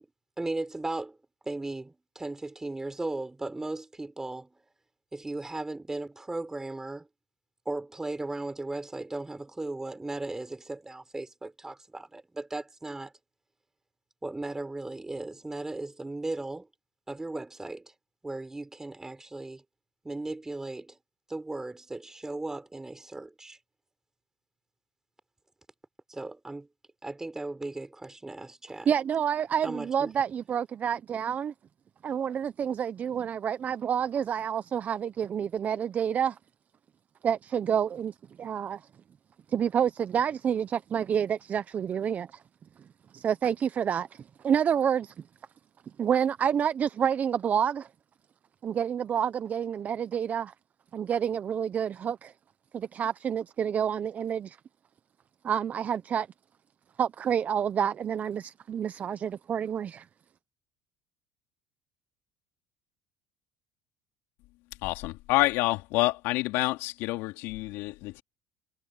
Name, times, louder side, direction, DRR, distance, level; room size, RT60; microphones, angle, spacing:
voice 1, 0.4-1.2 1.4-4.5 5.1-7.1 7.6-13.1 14.2-16.7 17.1-17.9 18.2-19.6 20.0-21.0 21.3-23.6 26.1-26.7 27.0-28.9 29.6-30.1, right 2 dB, 10° right, 5.1 m, -36 dB
voice 2, 28.9-31.5 32.0-36.4 37.2-38.8 39.5-42.4 43.1-45.1 46.0-47.9 48.6-50.5 50.9-52.3 52.7-54.6 55.4-56.3 57.0-60.1, right 8 dB, 40° right, 0.9 m, -28 dB
voice 3, 64.8-68.2, left 20 dB, 75° left, 2.8 m, -28 dB
supercardioid pair, 95°, 4 cm